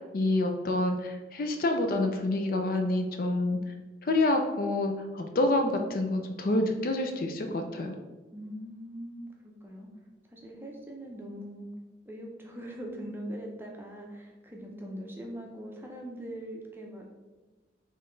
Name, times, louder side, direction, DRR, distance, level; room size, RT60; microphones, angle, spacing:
voice 1, 0.0-3.6 4.0-7.9, left 2 dB, 50° left, 5 dB, 0.4 m, -27 dB
voice 2, 8.3-9.9 10.3-11.7 12.1-17.1, equal, 10° right, 0 dB, 0.6 m, -41 dB
3.9 x 3.2 x 3.8 m, 1.2 s
head